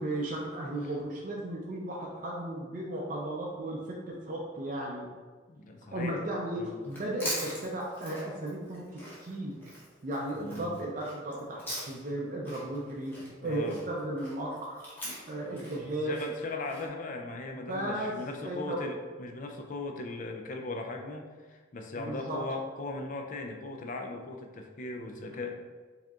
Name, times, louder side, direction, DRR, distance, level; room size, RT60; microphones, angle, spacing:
voice 1, 0.0-5.1 5.9-9.5 10.0-11.6 11.9-13.1 13.4-14.8 15.3-16.2 17.7-18.1 18.4-18.8 22.0-22.4, right 1 dB, 45° right, -3 dB, 0.5 m, -35 dB
voice 2, 5.5-6.2 6.6-6.8 10.3-10.8 13.4-13.8 15.4-15.6 16.0-25.5, left 2 dB, 45° left, 3 dB, 0.4 m, -38 dB
Chewing mastication, 6.8-12.2 12.4-16.8, equal, 10° left, 0.9 m, -42 dB
4.6 x 2.8 x 2.4 m, 1.4 s
head